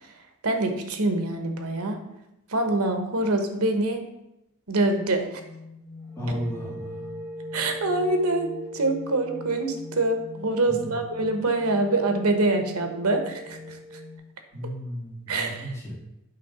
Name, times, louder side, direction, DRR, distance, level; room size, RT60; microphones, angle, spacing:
voice 1, 0.4-2.0 2.5-4.0 4.7-5.4 6.3-6.4 7.5-13.8 15.3-15.7, right 2 dB, 85° right, 6 dB, 1.1 m, -25 dB
sound 1, 5.3-14.2, left 1 dB, 15° right, 1.7 m, -40 dB
voice 2, 6.1-7.1 10.7-11.0 14.5-15.9, equal, 10° left, -7 dB, 2.4 m, -34 dB
8.3 x 3.7 x 5.9 m, 0.88 s
head